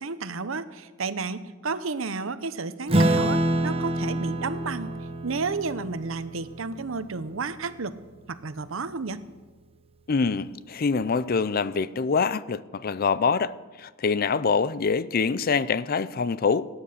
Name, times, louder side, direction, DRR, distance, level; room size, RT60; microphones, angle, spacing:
voice 1, 0.0-4.9 5.2-8.0 8.3-9.2, right 4 dB, 80° right, 0.8 m, -32 dB
Acoustic guitar / Strum, 2.9-7.7, right 1 dB, 30° right, 1.0 m, -27 dB
voice 2, 10.1-13.5 13.8-16.7, left 5 dB, 50° left, 0.5 m, -25 dB
18.0 x 9.9 x 6.7 m
head